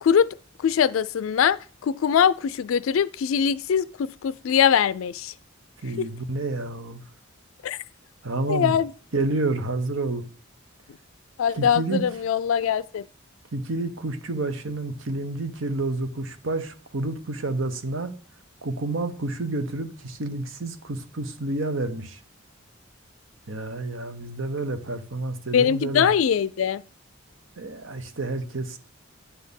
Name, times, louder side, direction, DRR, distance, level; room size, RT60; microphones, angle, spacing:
voice 1, 0.6-5.3 6.0-6.1 7.6-7.8 8.5-8.9 11.4-13.0 25.5-26.8, left 8 dB, 85° left, 0.4 m, -22 dB
voice 2, 5.8-7.0 8.2-8.8 9.1-10.2 11.6-12.0 13.5-18.1 18.6-22.2 23.5-26.1 27.6-28.8, right 2 dB, 75° right, 1.1 m, -29 dB
9.6 x 4.3 x 7.0 m
head